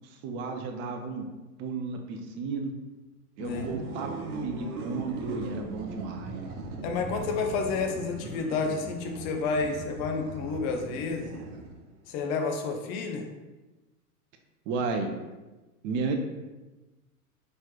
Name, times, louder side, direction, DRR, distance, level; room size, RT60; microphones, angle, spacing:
voice 1, 0.2-1.2 1.6-2.7 3.4-6.5 14.7-15.1 15.8-16.2, right 4 dB, 30° right, 4 dB, 0.4 m, -33 dB
sound 1, 3.4-12.0, right 2 dB, 70° right, 0.7 m, -39 dB
voice 2, 6.8-11.3 12.1-13.3, left 4 dB, 40° left, 3 dB, 0.6 m, -30 dB
4.3 x 3.1 x 2.3 m, 1.1 s
hypercardioid pair, 95°, 45 cm